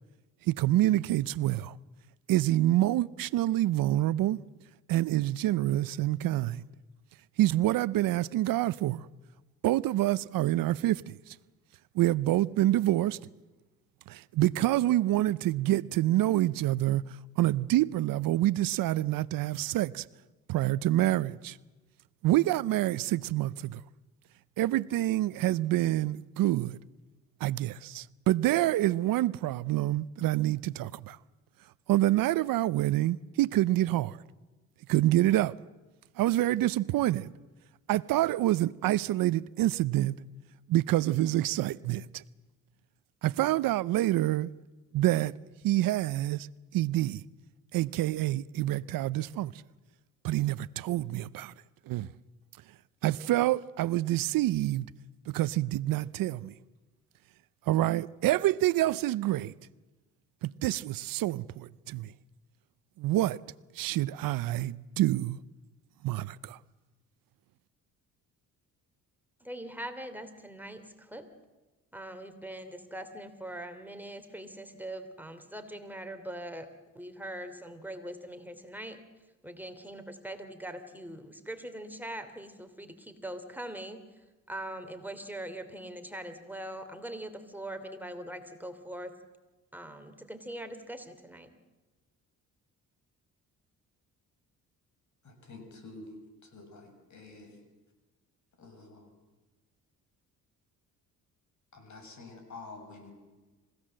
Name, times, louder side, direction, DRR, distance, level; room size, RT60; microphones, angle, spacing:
voice 1, 0.5-1.7 2.3-4.4 4.9-6.6 7.4-9.1 9.6-11.4 11.9-13.2 14.1-17.0 17.4-20.0 20.5-21.6 22.2-23.8 24.6-26.8 27.4-31.2 31.9-34.2 34.9-35.5 36.2-37.3 37.9-40.2 40.7-42.2 43.2-44.5 44.9-45.3 45.6-46.5 46.7-47.2 47.7-49.5 50.2-51.5 51.9-52.1 53.0-54.9 55.3-56.5 57.7-59.5 60.4-62.1 63.0-63.4 63.8-65.4 66.0-66.6, right 15 dB, 80° right, 0.7 m, -27 dB
voice 2, 69.4-71.3 71.9-76.7 76.9-79.0 79.4-84.0 84.5-89.1 89.7-91.5, right 1 dB, 5° right, 3.0 m, -42 dB
voice 3, 95.2-96.1 96.4-97.6 98.6-99.1 101.7-103.1, left 3 dB, 55° left, 6.9 m, -48 dB
27.5 x 17.0 x 7.6 m
cardioid pair, 75°, 34 cm